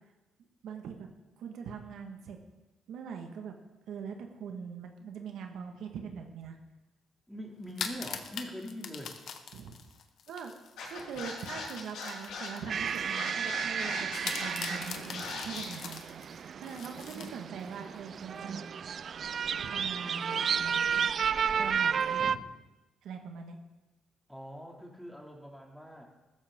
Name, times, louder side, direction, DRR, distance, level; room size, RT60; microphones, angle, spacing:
voice 1, 0.6-1.1 1.4-2.4 2.9-3.6 3.9-6.6 9.5-9.7 10.3-10.5 10.9-16.0 16.6-18.6 19.6-20.7 21.6-22.4 23.0-23.6, right 6 dB, 80° right, 4 dB, 1.5 m, -42 dB
voice 2, 7.3-9.4 24.3-26.1, equal, ahead, 0 dB, 2.5 m, -43 dB
sound 1, 7.6-13.1 13.5-13.6 14.2-17.7, left 7 dB, 70° left, 1.2 m, -43 dB
Scratching (performance technique), 10.8-15.6, left 4 dB, 85° left, 4.7 m, -40 dB
sound 2, 12.7-22.4, right 7 dB, 55° right, 0.3 m, -32 dB
15.0 x 13.5 x 3.7 m, 1.1 s
cardioid pair, 90°, 0 cm